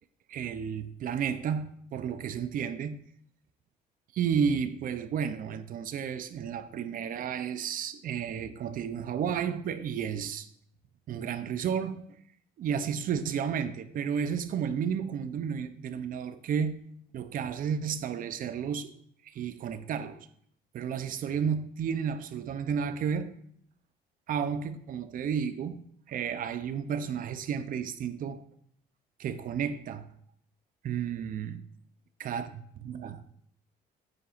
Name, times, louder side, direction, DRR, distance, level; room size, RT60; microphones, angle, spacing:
voice 1, 0.3-3.0 4.1-10.5 11.1-12.0 12.6-16.8 17.1-18.9 19.2-20.3 20.7-23.3 24.3-28.4 29.2-30.1 30.8-31.6 32.2-32.5 32.8-33.2, right 7 dB, 55° right, 0.7 m, -32 dB
9.4 x 8.5 x 2.5 m
cardioid pair, 110°, 17 cm